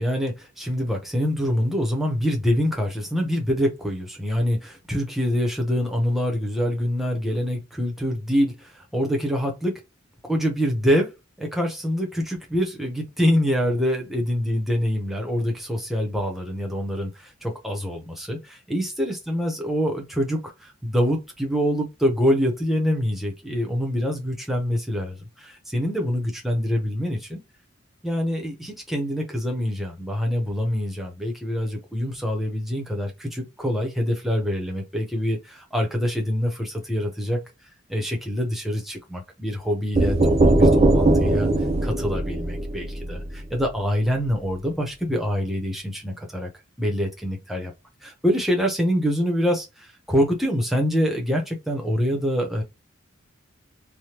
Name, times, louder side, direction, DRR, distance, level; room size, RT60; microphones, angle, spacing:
voice 1, 0.0-9.7 10.2-11.1 11.4-27.4 28.0-37.4 37.9-41.5 41.8-46.5 46.8-47.7 48.0-52.6, equal, ahead, 0.8 m, -25 dB
sound 1, 39.9-43.7, right 2 dB, 30° right, 0.4 m, -20 dB
3.4 x 2.1 x 2.9 m
head